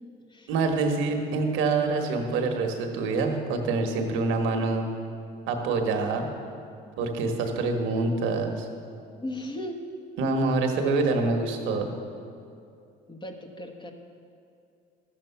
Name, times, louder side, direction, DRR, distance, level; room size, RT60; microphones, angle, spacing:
voice 1, 0.5-4.9 5.5-6.3 7.0-8.7 10.2-11.9, right 3 dB, 80° right, 4 dB, 1.4 m, -26 dB
voice 2, 9.2-9.8 13.1-13.9, left 1 dB, 20° left, 3 dB, 1.3 m, -36 dB
12.0 x 7.6 x 5.8 m, 2.5 s
supercardioid pair, 85°, 20 cm